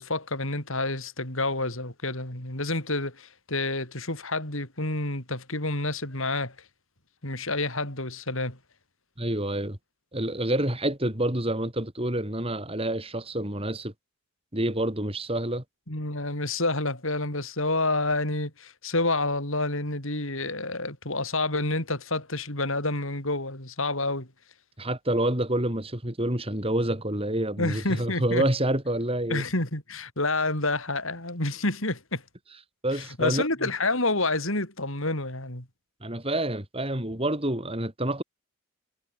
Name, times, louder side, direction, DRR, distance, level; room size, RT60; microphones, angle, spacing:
voice 1, 0.0-6.6 7.2-8.6 15.9-24.3 27.6-28.4 29.3-32.2 32.9-35.7, left 2 dB, 65° left, 6.9 m, -29 dB
voice 2, 9.2-9.8 10.1-13.9 14.5-15.6 24.8-29.4 32.8-33.7 36.0-38.2, right 1 dB, 25° right, 3.7 m, -28 dB
head